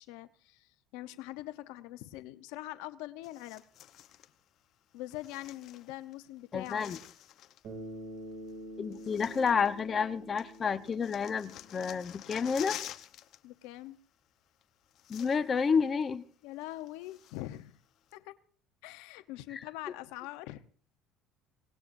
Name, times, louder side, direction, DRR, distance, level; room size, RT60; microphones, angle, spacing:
voice 1, 0.0-3.6 4.9-7.0 13.4-14.0 16.4-17.8 18.1-18.3 18.8-20.6, left 16 dB, 85° left, 0.9 m, -43 dB
sound 1, 3.2-4.3 5.1-6.2 6.4-7.7 8.5-8.6 8.9-10.1 10.4-13.4 13.6-13.9 14.6-14.7 14.9-15.7 16.0-16.1 16.6-17.6 18.1-18.2, left 12 dB, 55° left, 0.9 m, -48 dB
voice 2, 6.5-7.0 8.8-12.8 15.1-16.2 19.5-19.6, left 6 dB, 30° left, 0.9 m, -30 dB
Bass guitar, 7.6-12.0, right 1 dB, 60° right, 6.4 m, -46 dB
27.0 x 18.5 x 2.7 m
cardioid pair, 120°, 0 cm